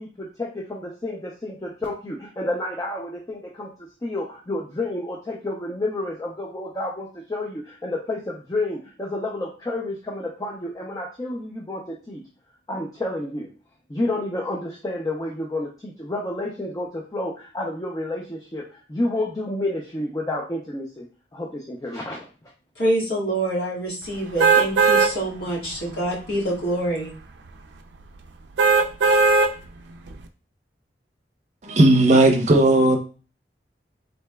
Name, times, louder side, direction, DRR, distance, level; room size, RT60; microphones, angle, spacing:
voice 1, 0.0-12.2 12.7-13.5 13.9-21.1 21.3-22.3, left 1 dB, 20° left, 0.5 m, -30 dB
voice 2, 22.8-27.1, right 1 dB, 65° left, 1.6 m, -26 dB
Car Horn sound, 24.4-25.1 25.7-25.8 28.6-29.5 30.1-30.2, right 4 dB, 80° right, 0.4 m, -17 dB
voice 3, 31.6-33.0, right 1 dB, 40° right, 0.7 m, -15 dB
3.8 x 3.3 x 2.2 m
head